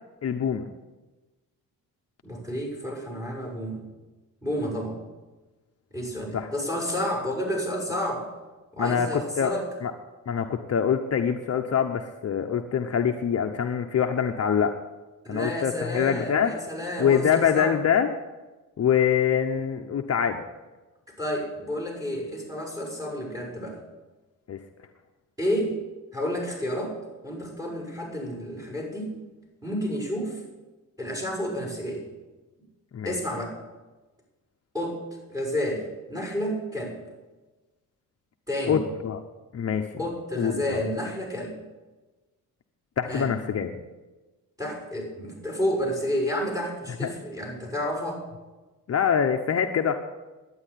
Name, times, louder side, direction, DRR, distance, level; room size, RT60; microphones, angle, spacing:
voice 1, 0.2-0.7 6.3-6.5 8.8-9.5 9.8-9.9 10.3-14.8 15.3-16.5 17.0-18.1 18.8-20.4 24.5-24.6 32.9-33.2 38.6-39.2 39.5-39.8 40.4-40.8 43.0-43.7 47.0-47.1 48.9-50.0, left 7 dB, 45° left, 5 dB, 0.9 m, -24 dB
voice 2, 2.2-3.8 4.4-5.0 5.9-8.2 8.7-9.7 15.2-17.7 21.2-23.8 25.4-25.8 26.1-26.9 27.2-29.2 29.6-30.4 31.0-32.0 33.0-33.5 34.7-35.0 35.3-37.0 38.5-38.8 40.0-41.6 43.1-43.3 44.6-48.2, equal, 10° right, 0 dB, 6.8 m, -30 dB
11.0 x 9.7 x 10.0 m, 1.2 s
cardioid pair, 110°, 34 cm